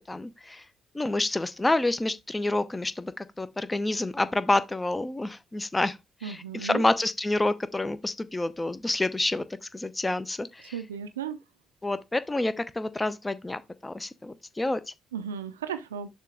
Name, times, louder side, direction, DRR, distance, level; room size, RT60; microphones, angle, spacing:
voice 1, 0.1-0.6 0.9-6.0 6.2-9.5 9.7-10.8 11.8-14.8, left 2 dB, 20° left, 0.7 m, -28 dB
voice 2, 6.2-6.8 10.7-11.4 15.1-16.1, right 8 dB, 85° right, 0.5 m, -35 dB
6.7 x 3.1 x 4.9 m
hypercardioid pair, 45°, 0 cm